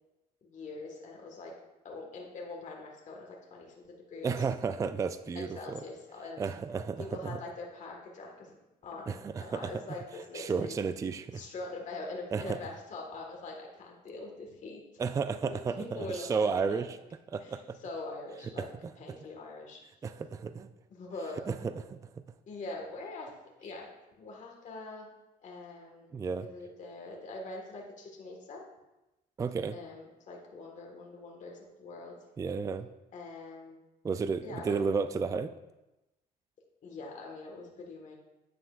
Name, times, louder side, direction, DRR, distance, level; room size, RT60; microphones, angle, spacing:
voice 1, 0.4-1.5 1.8-4.3 5.3-6.4 7.0-8.6 8.8-10.8 11.3-14.8 15.8-16.8 17.4-18.7 19.0-19.8 20.9-21.4 22.5-23.3 23.6-23.9 24.2-25.1 25.4-26.1 26.4-28.6 29.7-32.1 33.1-33.8 34.4-34.8 36.8-38.1, left 2 dB, 45° left, 0 dB, 1.6 m, -43 dB
voice 2, 4.2-5.8 6.4-7.4 9.1-9.7 10.3-11.4 12.3-12.6 15.0-17.0 17.3-17.8 18.6-18.9 20.0-20.7 21.5-22.0 26.1-26.5 29.4-29.8 32.4-32.9 34.0-35.5, right 5 dB, 20° right, 11 dB, 0.3 m, -32 dB
9.6 x 9.2 x 2.5 m, 1.0 s
cardioid pair, 110°, 17 cm